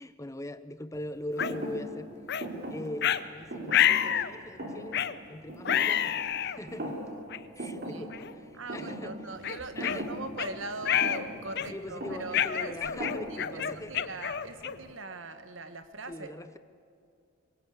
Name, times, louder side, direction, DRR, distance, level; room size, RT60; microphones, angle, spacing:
voice 1, 0.0-2.1 2.7-5.0 5.3-7.0 7.6-9.1 9.8-10.1 11.7-14.2 16.1-16.6, left 1 dB, 15° left, 13 dB, 0.6 m, -41 dB
sound 1, 1.4-1.5 2.3-2.5 3.0-3.2 3.7-4.3 4.9-5.2 5.6-6.6 7.3-7.4 8.1-8.3 8.7-8.9 9.4-10.5 10.8-11.2 11.5-11.9 12.3-14.9, left 10 dB, 50° left, 0.7 m, -28 dB
Thump thud, 1.4-6.4 6.7-7.3 7.6-13.7, right 1 dB, 45° right, 3.4 m, -40 dB
voice 2, 7.6-8.1 8.5-12.8 13.1-16.3, right 3 dB, 60° right, 9 dB, 1.5 m, -41 dB
23.5 x 22.0 x 8.4 m, 2.4 s
head